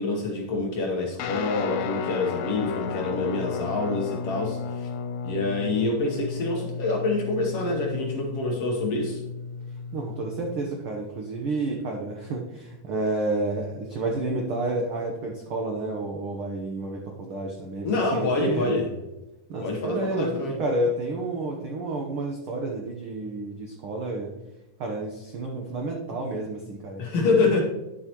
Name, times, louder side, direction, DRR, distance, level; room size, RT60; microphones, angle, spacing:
voice 1, 0.0-4.9 5.2-9.2 17.8-18.9 19.6-20.6 27.0-27.6, left 3 dB, 60° left, 0 dB, 1.7 m, -26 dB
Guitar, 1.2-10.6, left 6 dB, 75° left, 1.8 m, -34 dB
voice 2, 9.9-18.8 19.5-20.3 20.6-24.3 24.8-27.5, right 2 dB, 75° right, 0 dB, 1.2 m, -30 dB
10.5 x 7.5 x 3.0 m, 0.99 s
omnidirectional pair, 3.7 m